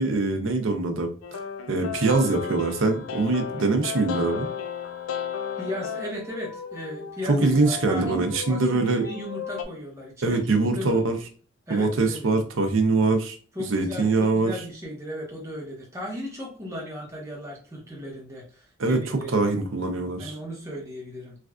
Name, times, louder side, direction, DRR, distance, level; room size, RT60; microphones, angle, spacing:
voice 1, 0.0-1.4 1.7-4.5 7.3-9.0 10.2-11.2 11.7-13.4 13.7-14.5 18.8-20.4, right 3 dB, 75° right, 5 dB, 0.6 m, -23 dB
sound 1, 1.2-9.6, left 7 dB, 85° left, 0.4 m, -35 dB
voice 2, 5.6-11.0 11.7-12.3 13.5-19.5 20.2-21.3, left 1 dB, 15° right, -3 dB, 0.9 m, -36 dB
3.2 x 2.4 x 2.4 m, 0.40 s
head